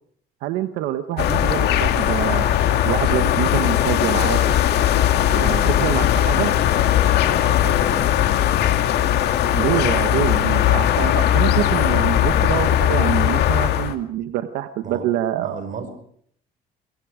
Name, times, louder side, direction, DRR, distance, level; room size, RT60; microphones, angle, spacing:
voice 1, 0.4-2.6 2.8-4.6 5.3-6.5 9.5-15.8, right 12 dB, 90° right, 9 dB, 1.3 m, -26 dB
sound 1, 1.2-13.9, left 11 dB, 75° left, 2.1 m, -19 dB
voice 2, 5.4-5.7 7.3-7.9 9.4-10.0 11.4-11.5 14.8-15.0 15.4-15.9, right 5 dB, 50° right, 8 dB, 5.8 m, -34 dB
24.0 x 23.5 x 5.0 m, 0.63 s
cardioid pair, 110°, 17 cm